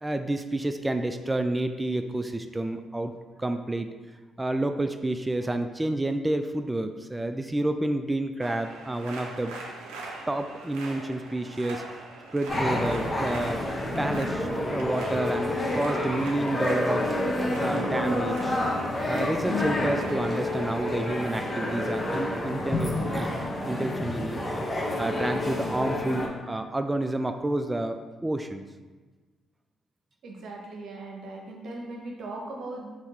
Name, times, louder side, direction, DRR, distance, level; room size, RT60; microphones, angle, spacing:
voice 1, 0.0-3.1 3.4-3.9 4.4-9.6 10.3-11.8 12.3-17.1 17.6-18.6 19.1-23.4 23.7-24.4 24.7-28.6, right 1 dB, 15° right, 8 dB, 0.3 m, -29 dB
sound 1, 8.4-23.9, right 3 dB, 85° right, 0.5 m, -44 dB
sound 2, 12.5-26.3, left 1 dB, 35° left, 0.7 m, -29 dB
voice 2, 30.2-32.9, right 2 dB, 65° right, -1 dB, 0.9 m, -39 dB
3.5 x 2.8 x 4.2 m, 1.3 s
hypercardioid pair, 50°, 0 cm